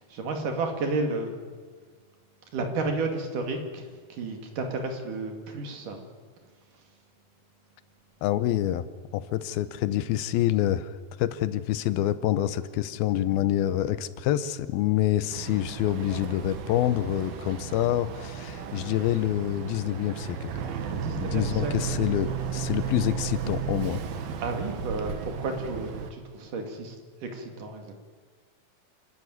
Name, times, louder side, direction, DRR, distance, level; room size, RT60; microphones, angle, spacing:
voice 1, 0.0-1.3 2.5-6.0 20.9-21.9 24.4-27.0 27.2-28.0, right 3 dB, 60° right, 4 dB, 3.7 m, -32 dB
voice 2, 8.2-8.9 9.1-10.9 11.2-20.5 21.2-24.0, left 13 dB, 85° left, 14 dB, 2.7 m, -27 dB
Boat Water vehicle, 15.3-26.1, right 7 dB, 80° right, 3.4 m, -34 dB
28.0 x 13.0 x 9.5 m, 1.5 s
omnidirectional pair, 4.3 m